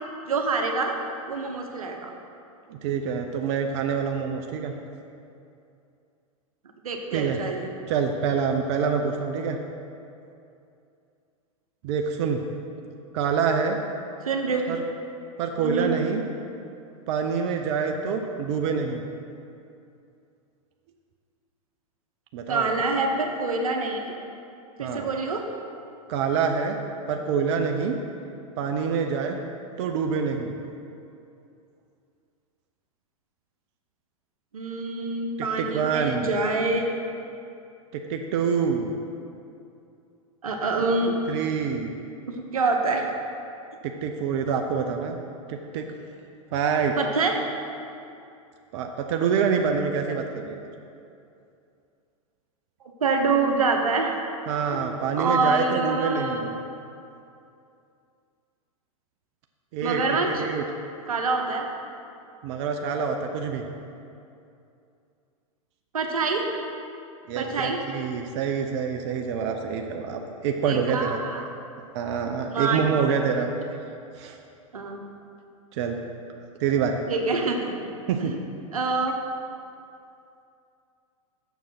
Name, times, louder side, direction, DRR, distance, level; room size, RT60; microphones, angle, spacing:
voice 1, 0.3-0.9 1.3-2.1 6.8-7.7 14.2-14.8 15.6-15.9 22.5-24.1 24.8-25.4 34.5-37.1 40.4-41.1 42.3-43.1 47.0-47.4 52.8-54.2 54.7-54.8 55.2-56.5 59.8-60.4 61.1-61.7 65.9-66.5 67.3-67.8 70.6-71.4 72.5-72.8 74.7-75.0 77.1-77.8 78.2-78.4 78.7-79.2, right 3 dB, 90° right, 3 dB, 1.0 m, -26 dB
voice 2, 2.7-4.7 7.1-7.4 7.9-9.6 11.8-12.4 13.1-13.8 14.7-14.8 15.4-16.2 17.1-19.0 22.3-22.8 24.8-25.1 26.1-26.8 27.1-27.9 28.6-29.4 29.8-30.5 35.6-36.3 37.9-38.9 41.3-41.9 43.8-45.2 45.5-45.8 46.5-46.9 48.7-50.6 54.5-56.6 59.7-60.6 62.4-63.6 67.3-71.2 71.9-73.5 74.2-74.4 75.7-76.0 76.6-77.0 78.1-78.3, right 6 dB, 55° right, 4 dB, 0.7 m, -26 dB
7.1 x 6.4 x 5.8 m, 2.6 s
hypercardioid pair, 110°, 18 cm